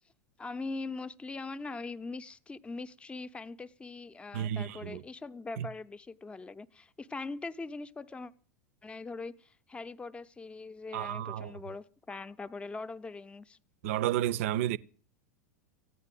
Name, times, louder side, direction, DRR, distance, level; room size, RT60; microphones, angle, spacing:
voice 1, 0.4-8.3 8.8-13.6, left 3 dB, 10° left, 0.7 m, -41 dB
voice 2, 4.3-5.0 5.6-5.7 10.9-11.5 13.8-14.8, right 12 dB, 55° right, 0.6 m, -31 dB
15.5 x 9.6 x 7.6 m
figure-of-eight pair, 90°, 9 cm